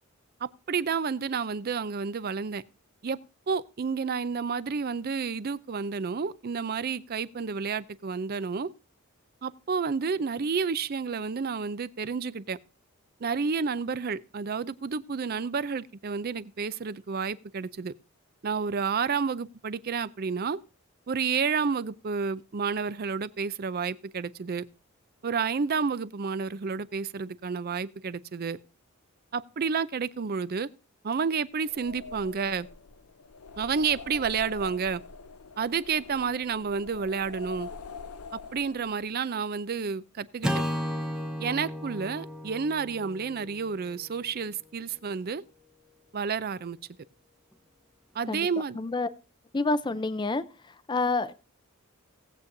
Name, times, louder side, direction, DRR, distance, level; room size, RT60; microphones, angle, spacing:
voice 1, 0.4-2.6 3.0-3.2 3.5-8.7 9.4-12.6 13.2-17.9 18.4-20.6 21.1-24.6 25.2-28.6 29.3-30.7 31.0-32.7 33.6-35.0 35.6-37.7 38.5-40.6 41.4-45.4 46.1-46.8 48.1-48.8, right 5 dB, 45° right, 0.5 m, -30 dB
sound 1, 31.5-39.1, left 5 dB, 80° left, 0.6 m, -45 dB
Acoustic guitar / Strum, 40.4-44.8, equal, 5° right, 0.8 m, -34 dB
voice 2, 48.7-49.1 49.5-50.4 50.9-51.3, left 3 dB, 20° left, 0.5 m, -27 dB
18.0 x 8.1 x 2.6 m
head